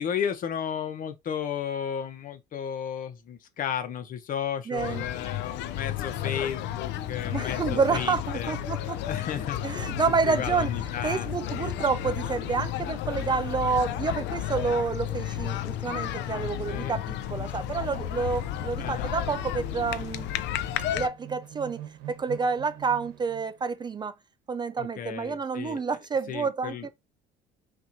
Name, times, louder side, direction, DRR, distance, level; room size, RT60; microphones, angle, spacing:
voice 1, 0.0-8.6 9.0-9.9 10.2-11.7 16.7-16.9 18.8-19.1 24.8-25.8 26.3-26.9, left 8 dB, 50° left, 1.0 m, -34 dB
voice 2, 4.7-5.0 7.2-9.0 9.6-10.7 11.0-20.3 20.9-21.8 22.1-24.1 24.5-26.9, right 5 dB, 25° right, 0.4 m, -29 dB
sound 1, 4.8-21.1, left 11 dB, 75° left, 0.5 m, -32 dB
sound 2, 17.2-23.8, right 12 dB, 85° right, 1.0 m, -48 dB
5.7 x 2.8 x 2.8 m
cardioid pair, 120°, 18 cm